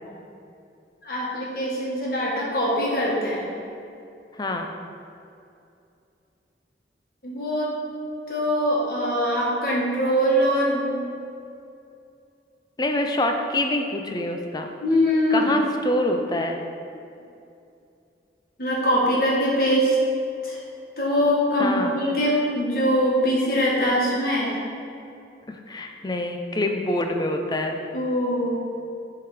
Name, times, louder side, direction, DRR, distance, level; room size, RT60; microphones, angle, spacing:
voice 1, 1.0-3.5 7.2-7.7 8.3-11.0 14.8-15.5 18.6-20.0 20.4-20.6 21.0-24.6 27.9-28.5, equal, 55° left, -5 dB, 1.7 m, -23 dB
voice 2, 4.4-4.7 12.8-14.7 15.3-16.6 21.6-22.0 25.5-27.8, left 1 dB, 25° left, 4 dB, 0.5 m, -26 dB
8.4 x 3.9 x 4.9 m, 2.6 s
head